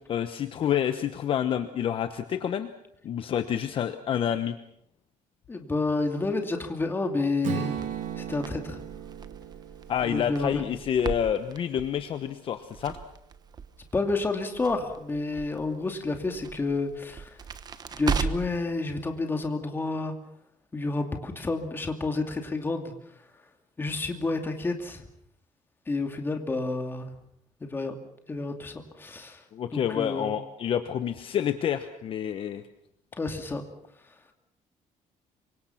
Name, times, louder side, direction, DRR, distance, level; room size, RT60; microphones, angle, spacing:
voice 1, 0.0-2.7 3.0-4.6 9.9-13.0 29.5-32.6, left 9 dB, 40° left, 9 dB, 1.1 m, -28 dB
voice 2, 5.5-7.8 8.2-8.8 10.1-10.6 13.9-17.4 18.0-20.1 20.7-22.9 23.8-25.0 25.9-27.1 27.6-27.9 28.3-29.4 29.7-30.4 33.2-33.6, left 3 dB, 15° left, 5 dB, 2.6 m, -30 dB
Strum, 7.4-11.6, right 10 dB, 70° right, 2.7 m, -37 dB
Crackle, 7.7-18.6, right 6 dB, 30° right, 1.2 m, -38 dB
27.5 x 24.5 x 5.9 m, 0.74 s
cardioid pair, 170°, 13 cm